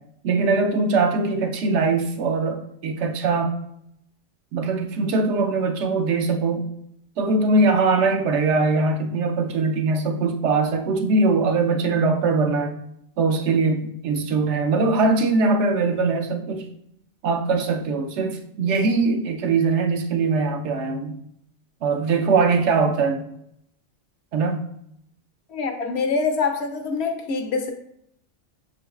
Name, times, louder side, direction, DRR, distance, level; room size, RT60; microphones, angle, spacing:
voice 1, 0.2-3.5 4.5-6.6 7.2-12.8 13.2-16.7 17.2-21.2 21.8-23.2 24.3-24.7, right 3 dB, 75° right, 5 dB, 0.9 m, -21 dB
voice 2, 25.5-27.7, left 4 dB, 65° left, 5 dB, 0.8 m, -25 dB
5.5 x 3.8 x 2.3 m, 0.75 s
omnidirectional pair, 1.3 m